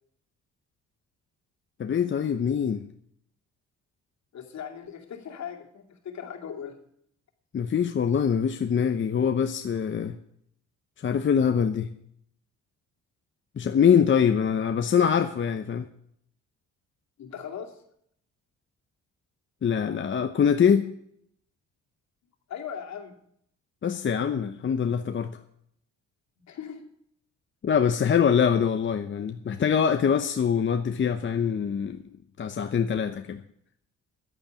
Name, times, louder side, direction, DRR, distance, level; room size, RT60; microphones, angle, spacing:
voice 1, 1.8-2.8 7.5-10.2 11.0-11.9 13.6-15.9 19.6-20.9 23.8-25.4 27.6-32.0 32.4-33.4, left 7 dB, 40° left, 8 dB, 0.8 m, -24 dB
voice 2, 4.3-6.8 17.2-17.8 22.5-23.2 26.4-26.8, left 8 dB, 65° left, 4 dB, 2.6 m, -39 dB
11.0 x 8.7 x 8.8 m, 0.69 s
cardioid pair, 90°, 30 cm